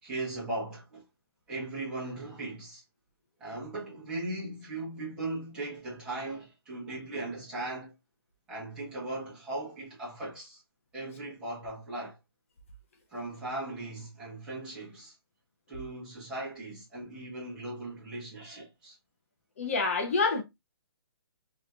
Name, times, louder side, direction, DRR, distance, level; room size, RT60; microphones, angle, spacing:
voice 1, 0.0-1.0 1.5-2.8 3.4-7.9 8.5-10.6 10.9-12.2 13.1-15.1 15.7-19.0, right 2 dB, 5° right, 1.2 m, -38 dB
voice 2, 19.6-20.4, left 4 dB, 30° left, 0.6 m, -27 dB
3.1 x 2.9 x 2.4 m
hypercardioid pair, 170°, 13 cm